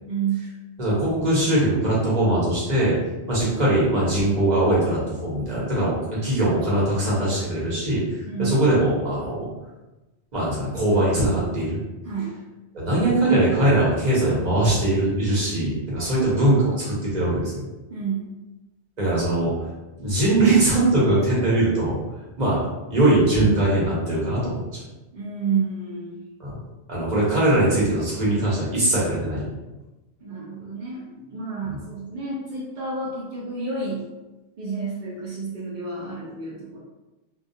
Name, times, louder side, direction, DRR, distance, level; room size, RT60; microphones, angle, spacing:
voice 1, 0.1-0.5 3.2-3.4 8.3-8.6 12.0-12.3 17.9-18.3 25.1-26.2 30.2-34.1 34.6-36.8, right 5 dB, 55° right, -7 dB, 0.5 m, -30 dB
voice 2, 0.8-3.0 3.3-8.0 8.4-9.5 10.3-11.8 12.7-17.7 19.0-19.5 20.0-22.0 22.4-22.6 22.9-24.6 26.4-26.5 26.9-29.5 31.6-31.8, right 1 dB, 40° right, -7 dB, 0.9 m, -21 dB
2.2 x 2.2 x 2.7 m, 1.1 s
omnidirectional pair, 1.2 m